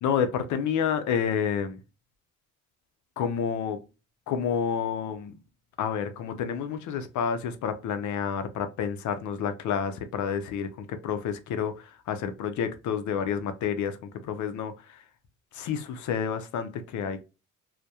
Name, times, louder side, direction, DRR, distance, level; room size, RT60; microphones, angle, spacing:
voice 1, 0.0-1.8 3.2-3.8 4.3-5.4 5.8-15.0 15.5-17.2, left 7 dB, 75° left, 0.5 m, -29 dB
2.2 x 2.1 x 2.7 m
cardioid pair, 90°, 30 cm